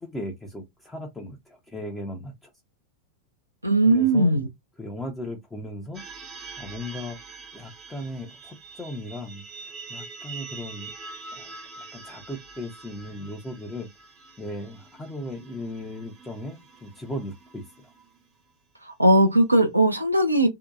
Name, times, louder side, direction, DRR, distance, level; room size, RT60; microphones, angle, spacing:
voice 1, 0.0-2.5 3.9-4.3 4.8-6.0 6.6-7.2 7.5-10.9 11.3-11.5 11.8-13.9 14.4-17.9, left 1 dB, 10° left, 0.5 m, -37 dB
voice 2, 3.6-4.5 18.8-20.5, right 1 dB, 85° right, 0.4 m, -19 dB
sound 1, 5.9-18.5, right 4 dB, 25° right, 0.6 m, -44 dB
2.6 x 2.2 x 2.3 m
figure-of-eight pair, 90°, 0 cm